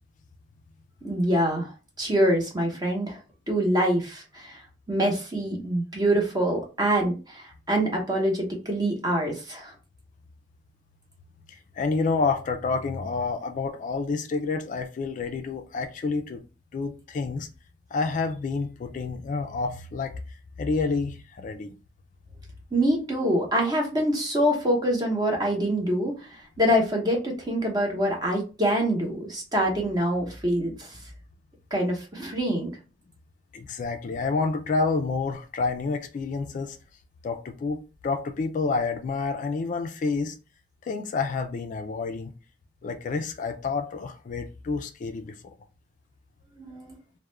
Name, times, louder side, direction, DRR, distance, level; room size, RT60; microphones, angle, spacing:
voice 1, 1.0-1.7 2.0-3.2 3.5-4.6 4.9-9.7 22.7-26.3 26.6-30.9 31.7-32.7 46.6-46.9, equal, 25° right, 0.8 m, -25 dB
voice 2, 11.7-16.4 16.7-17.5 17.9-21.7 33.5-36.8 37.2-40.4 40.8-42.3 42.8-45.5, left 4 dB, 45° left, 0.3 m, -29 dB
2.3 x 2.1 x 3.1 m
head